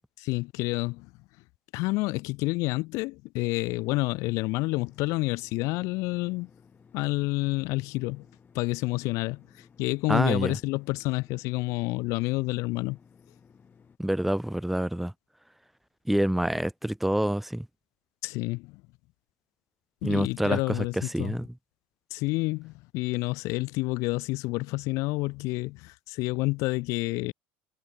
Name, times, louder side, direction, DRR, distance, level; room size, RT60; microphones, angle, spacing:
voice 1, 0.2-1.1 1.7-6.5 6.9-8.2 8.5-9.4 9.8-13.0 18.2-18.8 20.0-21.4 22.1-27.3, left 23 dB, 65° left, 0.5 m, -29 dB
sound 1, 3.4-14.0, left 6 dB, 30° left, 1.9 m, -58 dB
voice 2, 10.1-10.6 14.0-15.1 16.1-17.7 20.0-20.8 21.1-21.5, right 1 dB, 5° right, 0.4 m, -27 dB
hypercardioid pair, 80°, 6 cm